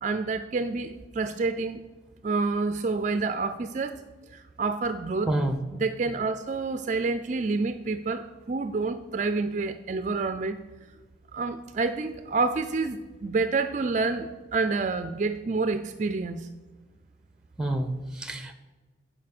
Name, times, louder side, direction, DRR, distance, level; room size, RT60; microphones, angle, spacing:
voice 1, 0.0-1.8 2.2-4.0 4.3-5.3 5.7-10.6 11.3-16.5, right 3 dB, 40° right, 10 dB, 0.4 m, -28 dB
voice 2, 5.3-5.6 17.6-18.5, right 1 dB, 5° right, 9 dB, 0.7 m, -28 dB
14.0 x 5.0 x 5.9 m, 1.3 s
head